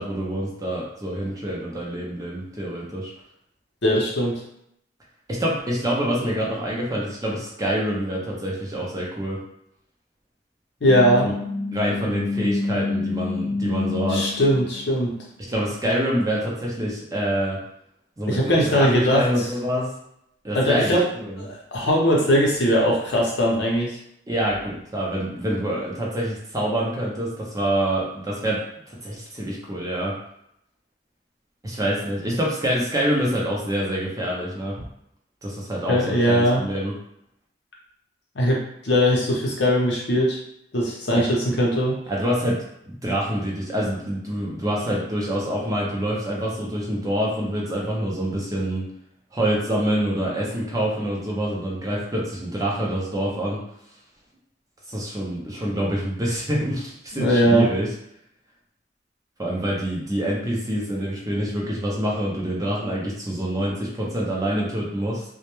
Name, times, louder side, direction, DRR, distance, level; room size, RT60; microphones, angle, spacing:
voice 1, 0.0-3.1 5.4-9.4 11.2-11.3 11.7-14.2 15.5-17.6 18.2-19.9 20.4-21.4 24.3-28.6 29.0-30.1 31.6-34.9 35.4-36.9 41.1-41.2 42.1-42.6 42.9-48.8 49.3-53.6 54.9-57.9 59.4-65.2, equal, 20° right, -4 dB, 0.5 m, -26 dB
voice 2, 3.8-4.4 10.8-11.3 14.1-15.1 18.3-19.5 20.5-21.0 21.4-24.0 35.9-36.6 38.3-40.4 40.7-41.9 57.1-57.7, equal, 65° left, -2 dB, 0.7 m, -20 dB
sound 1, 10.9-16.1, left 3 dB, 40° right, 0.9 m, -28 dB
2.1 x 2.1 x 3.0 m, 0.74 s
head